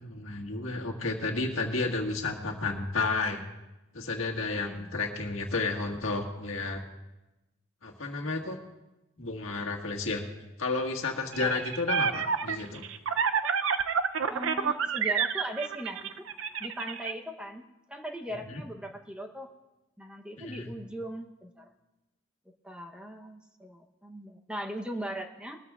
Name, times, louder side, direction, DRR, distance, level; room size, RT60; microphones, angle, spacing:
voice 1, 0.0-3.4 3.9-6.8 7.8-8.6 9.2-10.2 10.6-12.8 18.5-18.6 20.4-20.7, left 3 dB, 85° left, 1 dB, 1.7 m, -31 dB
voice 2, 4.4-4.9 11.4-11.6 14.3-16.3 16.6-17.6 17.9-19.5 20.0-21.7 22.6-25.6, right 1 dB, 5° right, 3 dB, 0.8 m, -39 dB
sound 1, 11.3-17.1, right 6 dB, 70° right, 0.5 m, -29 dB
21.0 x 13.5 x 2.4 m, 1.0 s
head